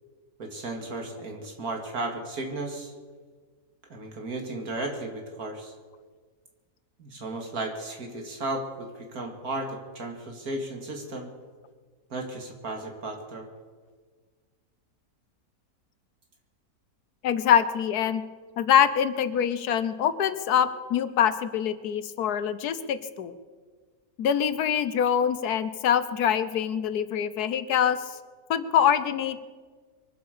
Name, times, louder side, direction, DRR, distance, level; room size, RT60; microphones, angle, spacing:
voice 1, 0.4-2.9 3.9-5.7 7.0-11.3 12.1-13.5, right 2 dB, 70° right, 2 dB, 2.6 m, -34 dB
voice 2, 17.2-18.2 18.6-23.3 24.2-28.2 28.5-29.4, left 8 dB, 90° left, 13 dB, 1.4 m, -24 dB
23.5 x 8.0 x 6.8 m, 1.5 s
omnidirectional pair, 1.6 m